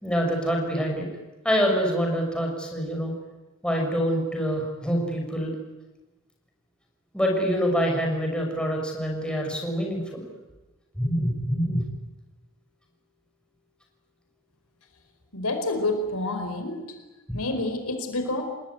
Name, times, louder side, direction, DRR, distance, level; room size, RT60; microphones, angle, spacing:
voice 1, 0.0-1.1 1.4-3.1 3.6-5.5 7.1-10.3 11.0-11.9, equal, 5° left, 0 dB, 6.0 m, -25 dB
voice 2, 15.3-16.8 17.3-18.4, left 2 dB, 85° left, 7 dB, 4.7 m, -28 dB
28.5 x 20.0 x 9.6 m, 1.1 s
head